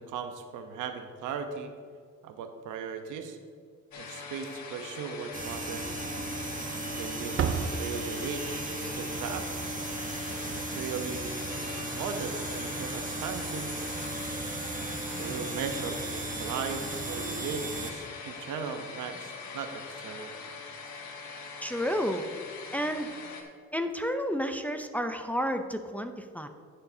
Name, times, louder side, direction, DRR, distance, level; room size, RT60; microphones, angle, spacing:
voice 1, 0.0-1.7 2.2-3.4 3.9-6.0 7.0-9.5 10.4-11.5 11.9-13.7 15.2-20.3, right 6 dB, 85° right, 6 dB, 0.9 m, -38 dB
sound 1, 3.9-23.4, left 4 dB, 70° left, 1.3 m, -42 dB
Slam, 4.2-4.8 5.1-5.2 5.7-5.8 6.6-6.9 7.2-8.5 11.2-11.3 11.5-11.7 13.2-13.4, right 7 dB, 45° right, 0.6 m, -34 dB
sound 2, 5.3-17.9, right 2 dB, 25° right, 1.0 m, -36 dB
voice 2, 21.6-22.3 22.7-23.1 23.7-26.5, equal, 5° left, 6 dB, 0.6 m, -31 dB
15.0 x 6.7 x 2.8 m, 2.1 s
cardioid pair, 90°, 30 cm